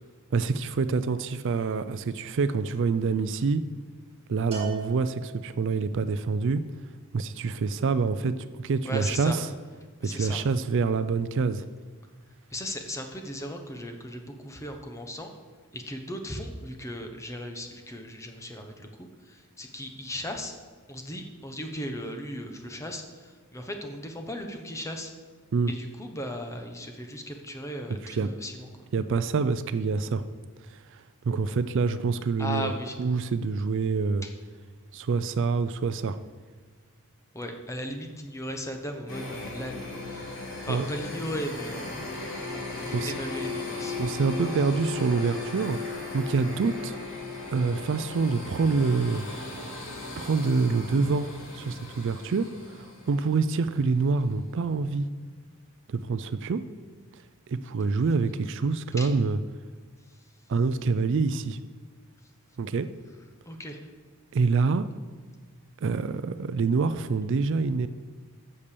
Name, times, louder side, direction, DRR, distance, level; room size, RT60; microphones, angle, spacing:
voice 1, 0.3-3.6 4.3-6.6 7.1-9.5 10.0-11.6 25.5-25.7 28.0-28.3 28.9-30.2 30.7-32.7 33.0-34.2 34.9-36.2 40.7-40.9 42.9-43.1 44.0-47.0 47.5-49.3 50.2-51.3 51.5-52.5 52.8-55.1 55.9-56.6 57.5-59.4 60.5-61.6 62.6-62.9 64.3-64.9 65.8-67.9, right 4 dB, 55° right, 12 dB, 0.4 m, -26 dB
Bell, 4.5-5.9, right 8 dB, 30° right, 2.6 m, -39 dB
voice 2, 8.8-9.4 10.0-10.4 12.5-15.3 15.7-20.5 20.9-25.1 25.7-28.7 32.4-33.0 34.2-34.3 37.3-42.1 42.4-44.0 59.0-59.1 63.5-63.8, equal, 15° left, 4 dB, 0.9 m, -37 dB
sound 1, 39.1-53.8, left 3 dB, 70° left, 3.6 m, -37 dB
8.5 x 6.8 x 6.8 m, 1.5 s
head